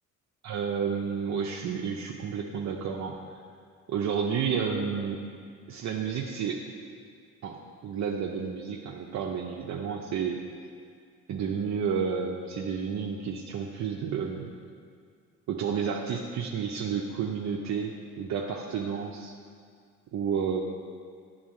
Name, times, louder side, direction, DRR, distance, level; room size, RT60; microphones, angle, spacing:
voice 1, 0.4-3.2 3.9-5.2 5.7-6.6 7.4-10.4 11.3-14.5 15.5-19.3 20.1-20.6, right 6 dB, 65° right, -1 dB, 0.8 m, -31 dB
10.5 x 4.0 x 7.5 m, 2.1 s
cardioid pair, 90°, 30 cm